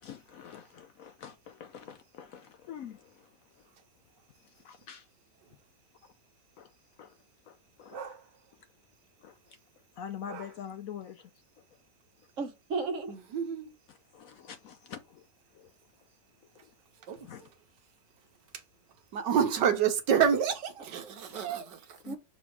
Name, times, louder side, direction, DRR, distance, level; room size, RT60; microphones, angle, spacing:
voice 1, 0.0-3.7 4.4-5.1 6.0-6.1 6.6-6.7 7.0-7.2 7.4-8.2 9.2-9.6 10.0-11.3 13.9-15.3 15.5-15.7 16.6-16.7 17.2-17.5 21.3-21.4 22.0-22.2, left 8 dB, 70° left, 0.9 m, -46 dB
voice 2, 7.9-8.2 10.3-10.4 13.3-13.7 17.1-17.2 19.1-21.6, right 7 dB, 85° right, 1.7 m, -28 dB
voice 3, 12.4-13.1 21.2-22.2, right 4 dB, 50° right, 1.2 m, -36 dB
6.2 x 3.4 x 4.6 m
omnidirectional pair, 1.8 m